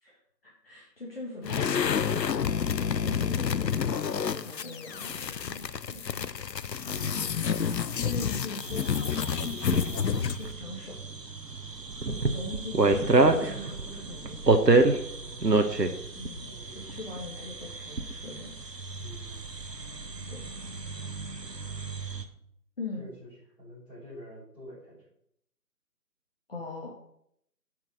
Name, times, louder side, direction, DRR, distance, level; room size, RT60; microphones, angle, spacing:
voice 1, 0.4-6.3 6.8-7.5 7.9-9.1 9.8-11.0 12.0-14.6 16.1-18.5 20.3-20.4 22.8-23.1 26.5-26.9, left 2 dB, 35° left, -4 dB, 1.7 m, -41 dB
sound 1, 1.4-10.5, left 7 dB, 90° left, 0.6 m, -29 dB
voice 2, 6.9-7.2 8.2-8.4 15.1-15.6 16.4-16.8 19.0-19.4 21.5-21.7 23.0-23.3 23.6-25.0, left 1 dB, 5° right, -16 dB, 4.3 m, -47 dB
sound 2, 8.6-22.2, right 3 dB, 80° right, 1.3 m, -28 dB
7.7 x 5.6 x 6.6 m, 0.73 s
figure-of-eight pair, 160°, 48 cm